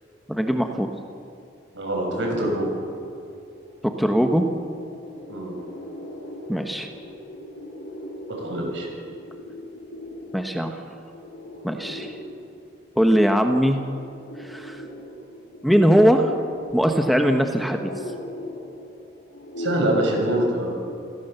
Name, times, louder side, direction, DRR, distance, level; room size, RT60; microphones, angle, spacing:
voice 1, 0.3-0.9 4.0-4.5 6.5-6.9 10.3-10.8 11.6-12.2 13.0-13.8 14.4-14.8 15.6-16.4 16.7-17.9, equal, ahead, 4 dB, 1.1 m, -20 dB
voice 2, 1.7-2.7 5.3-5.5 8.4-8.9 19.6-20.7, right 1 dB, 90° right, 0 dB, 6.8 m, -24 dB
sound 1, 3.4-3.5 3.8-20.0, left 1 dB, 85° left, 6.1 m, -39 dB
28.5 x 16.5 x 6.8 m, 2.6 s
head